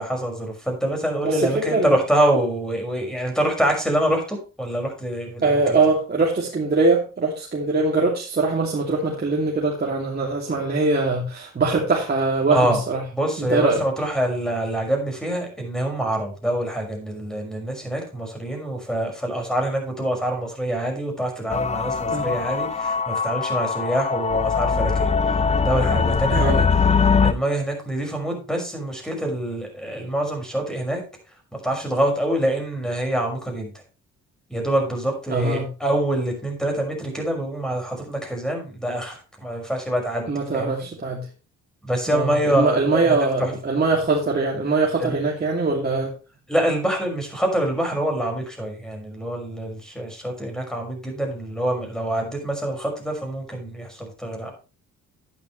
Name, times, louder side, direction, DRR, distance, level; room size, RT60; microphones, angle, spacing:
voice 1, 0.0-5.8 12.5-12.8 13.1-25.1 25.6-26.8 27.2-31.0 31.6-33.7 34.5-40.7 41.8-43.5 45.0-45.2 46.5-54.5, right 1 dB, ahead, 2 dB, 5.8 m, -25 dB
voice 2, 1.2-1.9 5.4-13.0 13.5-13.8 22.1-22.3 26.3-26.6 35.3-35.7 40.3-41.2 42.1-46.1, right 3 dB, 30° right, -3 dB, 2.7 m, -22 dB
sound 1, 21.5-27.3, left 5 dB, 20° left, 0.6 m, -21 dB
11.0 x 10.5 x 3.2 m, 0.33 s
cardioid pair, 90°, 30 cm